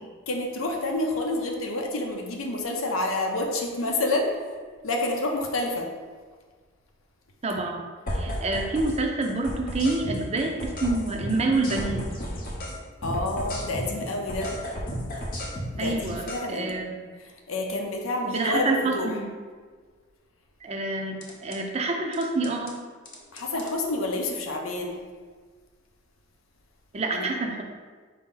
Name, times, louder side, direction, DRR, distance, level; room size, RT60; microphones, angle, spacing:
voice 1, 0.3-4.3 4.8-5.9 13.0-14.5 15.7-16.8 17.5-19.2 23.3-25.0 27.1-27.3, left 2 dB, 80° left, 2 dB, 0.7 m, -28 dB
voice 2, 7.4-7.9 8.1-12.1 15.8-17.1 18.2-19.3 20.6-22.8 26.9-27.6, right 2 dB, 30° right, 2 dB, 0.5 m, -27 dB
sound 1, 8.1-9.0 9.2-12.8 13.0-16.4 21.2-21.6 22.1-22.7 23.1-23.7, equal, 45° left, 0.7 m, -33 dB
5.0 x 2.8 x 3.8 m, 1.5 s
head